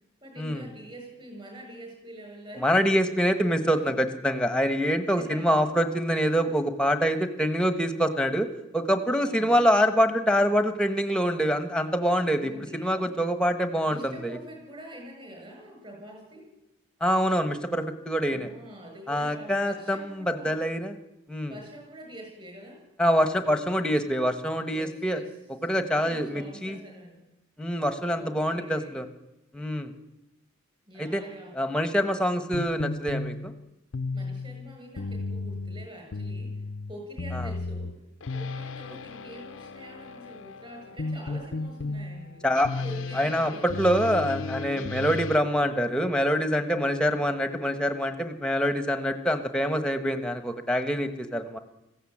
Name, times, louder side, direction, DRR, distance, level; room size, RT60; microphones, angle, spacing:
voice 1, 0.2-3.1 3.9-4.0 4.4-5.7 9.1-9.6 12.0-13.6 13.9-16.5 18.3-20.6 21.5-22.8 24.2-25.4 25.7-27.3 28.1-29.0 30.9-31.6 34.1-38.0 38.3-42.5 42.8-43.9 44.7-45.1, right 1 dB, 25° right, 2 dB, 7.5 m, -45 dB
voice 2, 2.6-8.5 8.7-14.0 14.2-14.4 17.0-18.5 19.1-20.9 21.3-21.5 23.0-25.2 25.6-26.8 27.6-29.0 29.5-29.9 31.0-31.2 31.6-33.5 42.4-42.8 43.2-43.5 43.8-51.6, equal, 5° left, 8 dB, 1.3 m, -25 dB
sound 1, 32.5-45.4, left 3 dB, 65° left, 0.7 m, -34 dB
20.5 x 15.5 x 8.7 m, 0.94 s
head